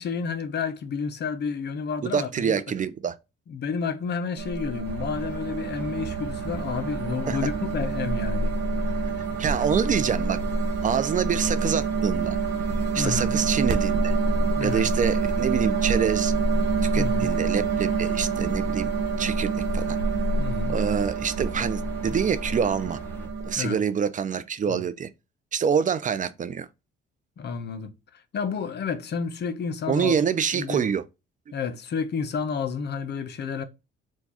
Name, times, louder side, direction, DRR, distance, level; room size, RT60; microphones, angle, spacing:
voice 1, 0.0-2.6 3.5-8.5 9.6-9.7 13.0-13.3 14.5-14.9 17.0-17.3 20.4-20.7 23.6-23.8 24.7-24.8 27.4-27.9 28.3-30.1 30.5-30.8 31.5-33.6, left 6 dB, 55° left, 0.7 m, -30 dB
voice 2, 2.0-3.2 7.3-7.4 9.4-10.4 10.8-12.4 12.9-14.2 14.6-16.3 16.9-20.0 20.7-23.0 23.4-25.1 25.5-26.7 29.9-31.0, right 7 dB, 40° right, 0.5 m, -26 dB
sound 1, 4.4-23.6, right 4 dB, 60° right, 0.8 m, -27 dB
sound 2, 4.8-23.3, right 2 dB, 10° left, 1.2 m, -41 dB
4.6 x 2.3 x 4.1 m
cardioid pair, 90°, 20 cm